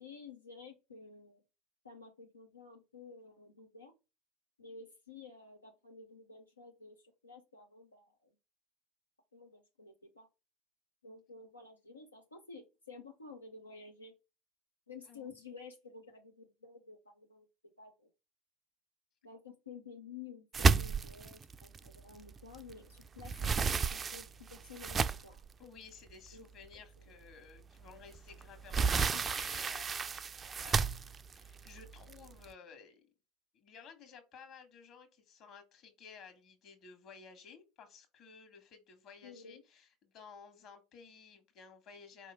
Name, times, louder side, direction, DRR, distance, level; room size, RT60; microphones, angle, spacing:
voice 1, 0.0-1.4 1.8-3.9 4.6-8.3 9.3-10.3 11.0-14.1 14.9-17.5 17.8-18.1 19.2-25.4 26.3-26.5 27.1-27.2 28.9-29.4 39.2-39.6, left 4 dB, 90° left, 2 dB, 0.6 m, -52 dB
sound 1, 20.5-22.7 23.0-25.4 26.1-26.2 26.6-26.8 28.1-32.4, right 5 dB, 25° right, 0.3 m, -32 dB
voice 2, 25.6-30.3 30.6-31.1 31.3-33.0 33.5-42.3, left 6 dB, 45° left, 7 dB, 1.4 m, -55 dB
4.7 x 3.0 x 3.4 m, 0.27 s
figure-of-eight pair, 75°, 0 cm